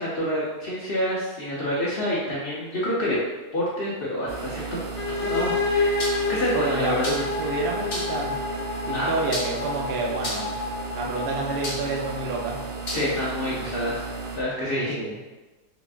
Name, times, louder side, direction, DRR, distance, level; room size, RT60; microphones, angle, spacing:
voice 1, 0.0-3.2 3.5-4.6 4.9-7.1 8.9-9.1 12.9-15.0, left 1 dB, 70° left, -6 dB, 0.5 m, -28 dB
sound 1, 4.3-14.4, right 4 dB, 65° right, 1.0 m, -35 dB
sound 2, 5.0-12.6, left 3 dB, 90° left, 1.3 m, -29 dB
sound 3, 6.0-6.3 7.0-7.4 7.9-8.2 9.3-9.8 10.2-10.6 11.6-12.0 12.9-13.1, left 1 dB, 45° left, 0.8 m, -31 dB
voice 2, 6.5-8.4 8.9-10.5 10.9-12.6 14.7-15.2, right 3 dB, 80° right, -1 dB, 0.4 m, -29 dB
4.9 x 2.4 x 2.4 m, 1.1 s
omnidirectional pair, 1.7 m